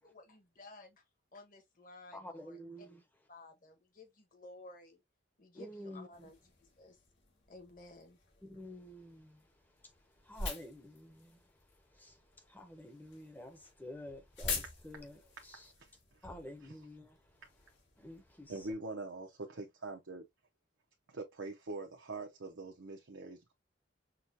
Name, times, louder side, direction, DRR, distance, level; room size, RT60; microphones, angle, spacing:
voice 1, 0.0-1.0 1.3-2.6 3.3-5.0 5.4-6.4 6.8-7.0 7.5-8.2, left 2 dB, 45° left, 1.4 m, -54 dB
voice 2, 2.1-3.0 5.5-6.3 8.4-9.5 9.8-15.7 16.2-17.4 18.0-18.7, left 1 dB, 10° left, 0.8 m, -50 dB
sound 1, 6.1-18.7, left 4 dB, 70° left, 2.2 m, -47 dB
voice 3, 18.5-20.2 21.1-23.5, right 2 dB, 85° right, 0.8 m, -43 dB
6.0 x 2.4 x 2.7 m
head